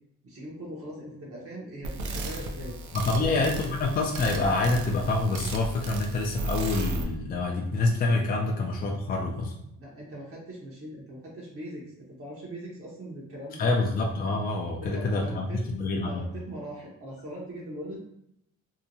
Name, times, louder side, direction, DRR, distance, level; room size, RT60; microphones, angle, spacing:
voice 1, 0.2-2.8 3.1-3.4 9.8-13.7 14.9-15.6 16.1-18.0, right 1 dB, 50° right, -4 dB, 0.9 m, -41 dB
sound 1, 1.8-7.0, right 2 dB, 80° right, 0.5 m, -35 dB
voice 2, 2.9-9.5 13.6-16.2, left 2 dB, 30° left, 1 dB, 0.4 m, -27 dB
2.7 x 2.2 x 2.7 m, 0.79 s
cardioid pair, 90°, 30 cm